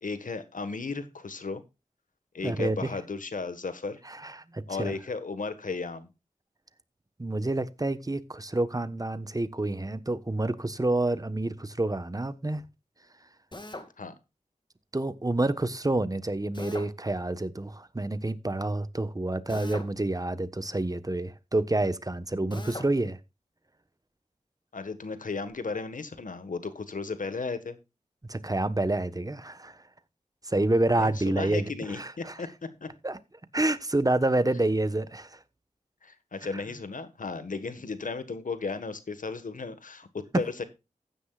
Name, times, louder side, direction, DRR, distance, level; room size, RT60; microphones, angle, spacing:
voice 1, 0.0-1.6 2.3-4.0 4.7-6.1 14.0-14.1 24.7-27.8 31.0-32.5 32.8-32.9 36.0-40.6, left 4 dB, 75° left, 1.5 m, -35 dB
voice 2, 2.4-2.9 4.1-4.9 7.2-12.6 14.9-23.2 28.3-29.8 30.5-32.3 33.0-33.2 33.5-35.4 36.5-36.6 40.3-40.4, right 2 dB, 25° right, 1.2 m, -28 dB
Drill, 13.5-13.9 16.5-16.9 19.5-19.9 22.5-22.9, left 2 dB, 35° left, 2.2 m, -40 dB
14.5 x 10.0 x 2.4 m
cardioid pair, 40°, 14 cm